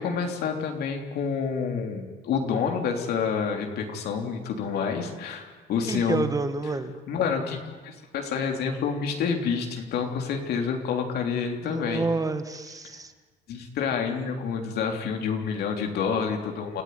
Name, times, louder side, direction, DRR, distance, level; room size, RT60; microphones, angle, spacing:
voice 1, 0.0-6.3 7.1-12.1 12.9-13.0 13.5-16.8, left 6 dB, 70° left, 3 dB, 3.5 m, -28 dB
voice 2, 5.9-6.9 11.6-13.1, right 3 dB, 20° right, 10 dB, 1.9 m, -28 dB
29.0 x 15.0 x 9.6 m, 1.4 s
cardioid pair, 110°, 17 cm